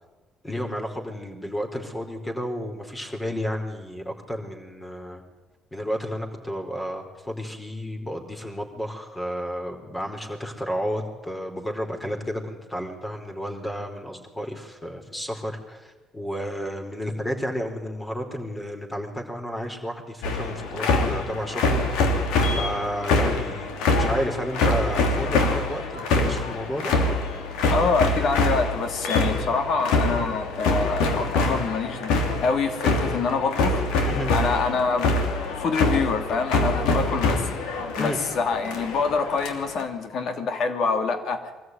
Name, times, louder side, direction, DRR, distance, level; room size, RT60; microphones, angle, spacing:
voice 1, 0.4-5.2 5.7-23.7 23.9-26.9 34.0-34.3 38.0-38.2, equal, 15° left, 4 dB, 4.5 m, -32 dB
sound 1, 20.2-39.9, left 2 dB, 85° left, 2.8 m, -25 dB
voice 2, 27.7-33.8 34.3-35.2 35.6-41.5, left 4 dB, 65° left, 8 dB, 2.8 m, -26 dB
23.5 x 14.0 x 9.6 m, 1.2 s
supercardioid pair, 80°, 0 cm